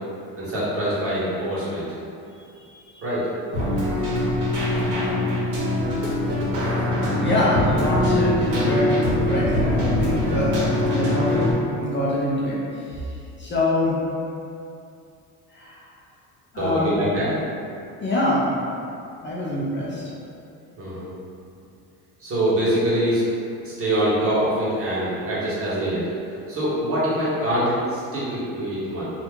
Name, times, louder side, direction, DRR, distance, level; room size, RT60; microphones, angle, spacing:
voice 1, 0.4-1.9 3.0-3.3 16.6-17.3 20.8-21.1 22.2-23.2 23.6-29.1, right 1 dB, 35° right, -9 dB, 1.4 m, -24 dB
voice 2, 2.3-3.1 7.2-14.0 15.5-15.9 16.5-17.0 18.0-18.5 19.2-20.0, left 1 dB, 30° left, -6 dB, 0.6 m, -25 dB
Keyboard (musical), 3.5-11.5, left 1 dB, 55° right, 1.2 m, -22 dB
2.7 x 2.4 x 3.6 m, 2.6 s
supercardioid pair, 90°, 38 cm